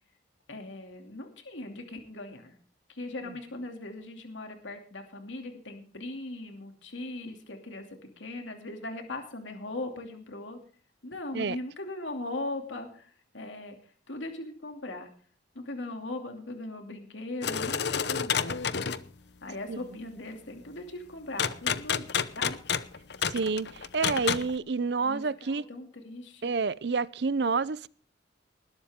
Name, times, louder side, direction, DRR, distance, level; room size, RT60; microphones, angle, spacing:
voice 1, 0.5-2.6 2.9-7.9 8.2-10.6 11.0-13.8 14.1-15.1 15.5-18.6 19.4-22.6 25.0-26.5, left 2 dB, 85° left, 2.7 m, -39 dB
sound 1, 17.4-19.1 21.4-24.5, left 7 dB, 60° left, 0.8 m, -29 dB
voice 2, 23.3-25.6 26.4-27.9, right 4 dB, 60° right, 0.5 m, -29 dB
20.0 x 12.0 x 3.7 m
head